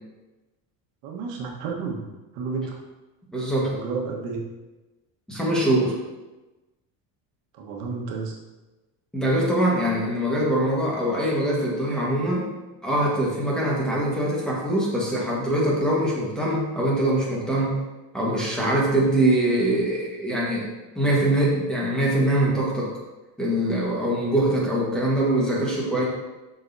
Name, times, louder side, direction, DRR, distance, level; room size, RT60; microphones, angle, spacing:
voice 1, 1.0-2.0 2.3-2.8 3.7-4.4 7.5-8.3, right 4 dB, 70° right, -1 dB, 1.4 m, -31 dB
voice 2, 3.3-3.7 5.3-6.0 9.1-12.5 12.8-17.7 18.1-20.7 20.9-22.9 23.4-26.0, right 1 dB, ahead, -6 dB, 1.4 m, -23 dB
7.7 x 6.2 x 2.7 m, 1.1 s
cardioid pair, 170°, 37 cm